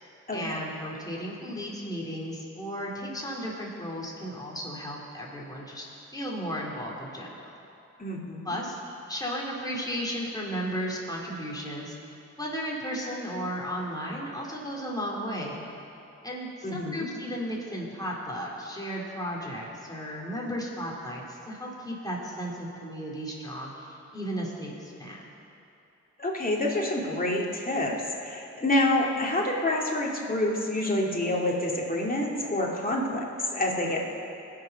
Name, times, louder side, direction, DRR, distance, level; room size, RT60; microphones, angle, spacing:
voice 1, 0.3-5.9 6.1-7.6 8.4-8.8 9.1-11.9 12.4-15.6 16.2-25.3, equal, 15° left, -4 dB, 3.7 m, -34 dB
voice 2, 8.0-8.5 16.6-17.1 26.2-27.9 28.2-34.1, left 1 dB, 30° left, -2 dB, 2.5 m, -27 dB
20.5 x 6.9 x 5.9 m, 2.8 s
cardioid pair, 60°, 29 cm